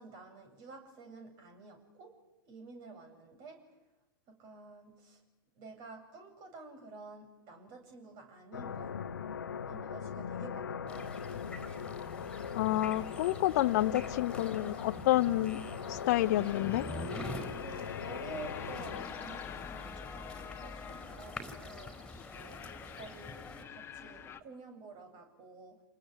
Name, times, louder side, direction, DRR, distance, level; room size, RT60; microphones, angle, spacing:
voice 1, 0.0-2.2 2.4-3.7 4.3-5.2 5.6-8.9 9.7-11.1 17.6-22.7 23.0-23.4 23.7-25.8, right 4 dB, 35° right, 7 dB, 8.0 m, -50 dB
sound 1, 8.5-19.1, left 7 dB, 75° left, 1.2 m, -40 dB
sound 2, 10.9-23.6, left 1 dB, 5° left, 5.1 m, -46 dB
voice 2, 12.5-15.6 15.9-16.8, left 15 dB, 50° left, 15 dB, 0.9 m, -29 dB
sound 3, 15.9-24.4, left 7 dB, 20° left, 1.8 m, -47 dB
29.5 x 20.0 x 9.8 m, 0.96 s
figure-of-eight pair, 105°, 11 cm